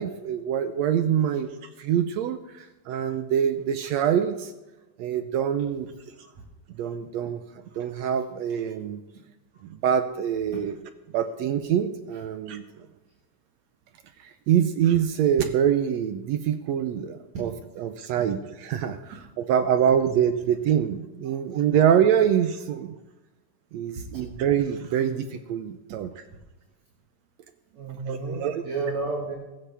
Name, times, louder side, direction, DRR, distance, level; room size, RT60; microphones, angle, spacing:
voice 1, 0.0-1.5 1.8-4.5 5.0-5.9 6.8-7.4 7.7-9.0 9.7-10.8 11.1-12.6 14.2-22.9 23.7-26.2 28.1-28.6, right 9 dB, 80° right, 9 dB, 1.6 m, -25 dB
voice 2, 27.7-29.3, right 3 dB, 60° right, -2 dB, 2.8 m, -31 dB
16.0 x 14.5 x 3.5 m, 1.1 s
omnidirectional pair, 3.7 m